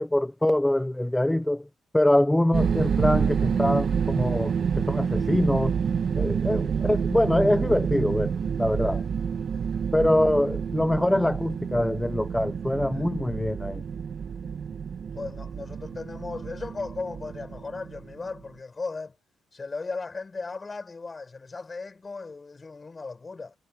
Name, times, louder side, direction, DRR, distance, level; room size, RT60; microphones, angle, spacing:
voice 1, 0.0-1.7 1.9-5.7 6.1-9.0 9.9-13.8, left 1 dB, 10° left, 0.6 m, -24 dB
sound 1, 2.5-18.4, right 7 dB, 50° right, 1.4 m, -28 dB
voice 2, 8.8-9.1 12.9-13.1 14.4-14.6 15.2-19.2 19.5-23.5, left 4 dB, 30° left, 5.6 m, -37 dB
cardioid pair, 90°, 0 cm